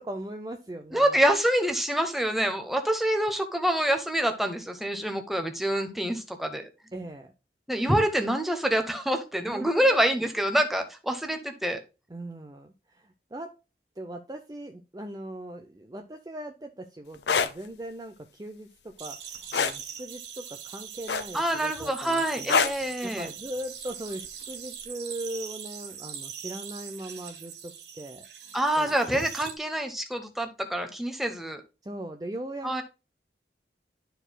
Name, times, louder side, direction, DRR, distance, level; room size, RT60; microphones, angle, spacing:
voice 1, 0.0-1.3 6.9-7.3 9.5-10.3 12.1-13.5 14.0-22.6 23.0-29.0 31.8-32.8, right 1 dB, 20° right, 5 dB, 0.5 m, -39 dB
voice 2, 0.9-6.7 7.7-11.8 21.3-23.3 28.5-31.6 32.6-32.8, right 1 dB, ahead, 5 dB, 0.9 m, -26 dB
sound 1, 17.1-17.5 19.5-19.8 21.1-21.5 22.5-22.8 24.2-24.4, left 6 dB, 75° left, 0.6 m, -24 dB
sound 2, 19.0-29.5, right 8 dB, 80° right, 1.2 m, -41 dB
12.0 x 4.5 x 2.2 m, 0.29 s
head